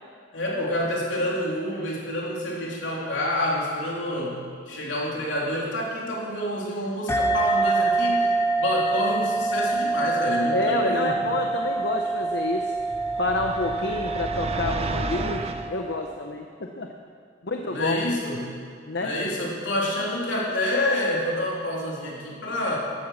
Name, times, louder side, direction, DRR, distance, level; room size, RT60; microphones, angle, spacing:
voice 1, 0.3-4.4 4.7-8.3 8.6-11.1 17.7-18.4 19.0-22.8, left 1 dB, 80° left, -4 dB, 3.4 m, -28 dB
sound 1, 7.1-16.1, right 3 dB, 15° left, 0.9 m, -26 dB
voice 2, 10.5-12.7 13.2-16.9 17.4-18.0 18.9-19.1, left 2 dB, 65° left, 3 dB, 0.8 m, -28 dB
sound 2, 12.8-15.7, right 3 dB, 35° right, 0.7 m, -32 dB
14.5 x 10.5 x 6.4 m, 2.2 s
head